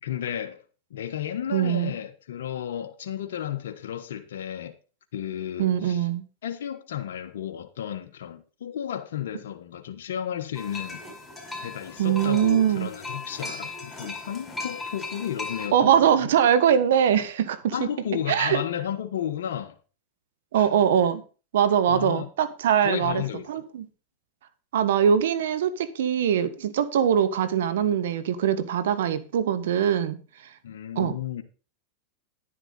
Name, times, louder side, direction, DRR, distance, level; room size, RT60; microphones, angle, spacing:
voice 1, 0.0-0.6 0.9-4.7 5.1-6.1 6.4-11.0 11.6-16.0 17.7-19.8 20.5-20.7 21.9-22.3 22.8-23.6 30.6-31.4, left 10 dB, 80° left, 1.1 m, -33 dB
voice 2, 1.5-1.9 5.6-6.2 12.0-12.9 15.7-17.9 18.3-18.6 20.5-21.2 21.5-23.2 23.5-23.9 24.7-30.5 30.9-31.2, right 9 dB, 80° right, 1.3 m, -22 dB
sound 1, 10.6-15.7, left 3 dB, 5° left, 5.0 m, -37 dB
10.5 x 10.0 x 4.0 m
hypercardioid pair, 115°, 0 cm